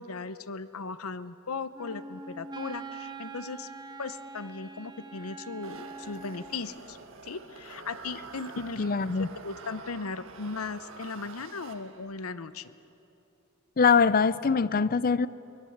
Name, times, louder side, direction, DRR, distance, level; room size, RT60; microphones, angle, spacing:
voice 1, 0.0-3.7 4.0-7.0 7.2-8.8 9.4-12.7, left 4 dB, 80° left, 14 dB, 0.8 m, -37 dB
Wind instrument woodwind instrument, 1.7-6.6, right 3 dB, 20° right, 1.0 m, -43 dB
sound 1, 5.6-12.2, right 4 dB, 65° right, 1.5 m, -47 dB
voice 2, 8.8-9.3 13.8-15.3, left 5 dB, 40° left, 18 dB, 0.5 m, -23 dB
24.0 x 20.0 x 8.0 m, 2.9 s
head